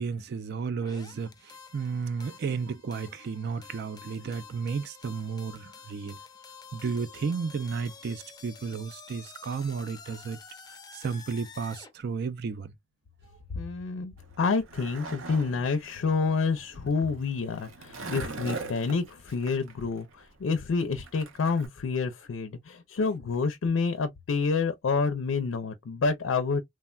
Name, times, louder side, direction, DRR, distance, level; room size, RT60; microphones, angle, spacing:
voice 1, 0.0-6.2 6.7-10.4 10.9-12.7, right 5 dB, 55° right, 0.4 m, -33 dB
sound 1, 0.8-11.9, left 5 dB, 20° left, 0.5 m, -49 dB
voice 2, 13.5-26.6, left 4 dB, 80° left, 0.4 m, -28 dB
Skateboard, 14.2-21.7, right 4 dB, 85° right, 0.7 m, -42 dB
3.3 x 2.1 x 2.3 m
head